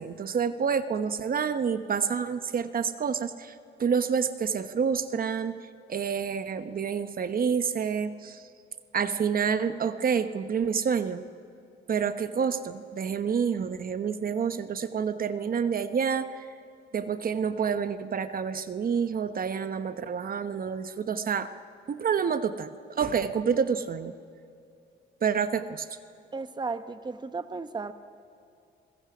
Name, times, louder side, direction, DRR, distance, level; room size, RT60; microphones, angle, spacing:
voice 1, 0.0-8.4 8.9-11.2 11.9-16.5 16.9-21.5 21.9-24.1 25.2-25.9, right 6 dB, 45° right, 11 dB, 1.0 m, -28 dB
voice 2, 26.3-27.9, right 4 dB, 20° right, 10 dB, 0.9 m, -34 dB
30.0 x 21.5 x 6.1 m, 2.5 s
cardioid pair, 90°, 20 cm